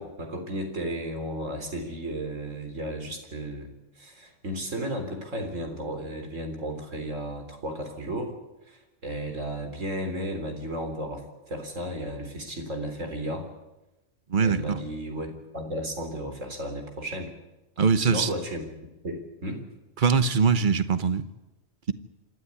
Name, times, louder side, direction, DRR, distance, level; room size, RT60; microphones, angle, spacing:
voice 1, 0.0-3.7 4.0-8.3 8.7-13.5 14.4-17.3 18.0-18.7 19.0-19.6, right 1 dB, 80° right, 5 dB, 4.0 m, -34 dB
voice 2, 14.3-14.8 17.8-18.3 20.0-21.2, right 5 dB, 45° right, 12 dB, 1.2 m, -22 dB
26.5 x 13.0 x 9.7 m, 1.0 s
omnidirectional pair, 1.3 m